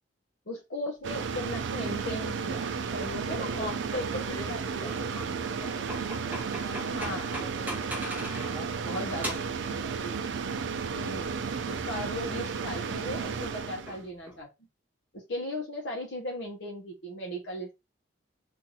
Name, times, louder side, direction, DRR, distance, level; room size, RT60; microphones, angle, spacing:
voice 1, 0.5-4.2 4.5-4.9 6.7-7.4 8.0-8.3 8.9-9.4 9.7-10.2 10.9-14.5 15.1-17.7, left 1 dB, 60° left, 0.8 m, -37 dB
sound 1, 1.0-14.0, right 5 dB, 60° right, 0.4 m, -33 dB
voice 2, 3.4-8.0 8.5-9.4 9.7-10.2, equal, 25° left, 1.4 m, -47 dB
sound 2, 5.5-8.7 9.1-9.6 10.9-12.0 12.3-12.6 13.4-14.4, equal, 10° right, 0.8 m, -41 dB
2.9 x 2.5 x 3.8 m
head